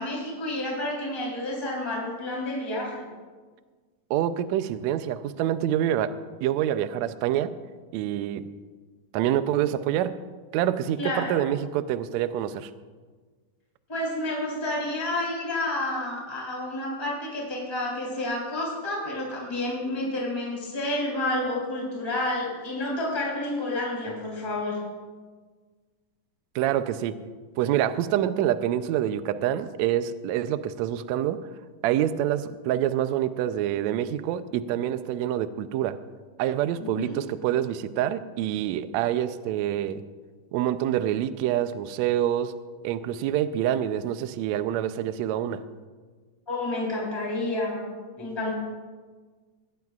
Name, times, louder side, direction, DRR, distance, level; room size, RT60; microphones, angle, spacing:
voice 1, 0.0-3.1 11.0-11.4 13.9-24.8 36.8-37.2 46.5-47.9 48.1-48.5, left 1 dB, 10° left, -3 dB, 3.4 m, -30 dB
voice 2, 4.1-7.5 7.9-8.5 9.1-10.2 10.5-12.7 26.5-27.1 27.6-31.5 31.8-36.0 36.4-40.0 40.5-42.6 42.8-45.6, right 11 dB, 85° right, 12 dB, 1.6 m, -26 dB
21.5 x 17.0 x 2.4 m, 1.5 s
omnidirectional pair, 3.8 m